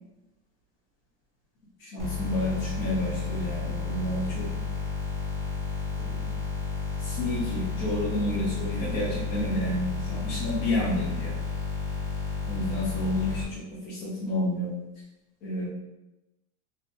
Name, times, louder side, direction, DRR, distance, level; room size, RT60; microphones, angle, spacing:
voice 1, 1.8-4.5 6.0-6.3 7.0-11.3 12.5-14.7 15.4-15.7, left 1 dB, 75° left, -8 dB, 1.0 m, -30 dB
sound 1, 2.0-13.4, left 4 dB, 10° left, 0.3 m, -32 dB
2.9 x 2.5 x 2.6 m, 0.96 s
cardioid pair, 175°, 40 cm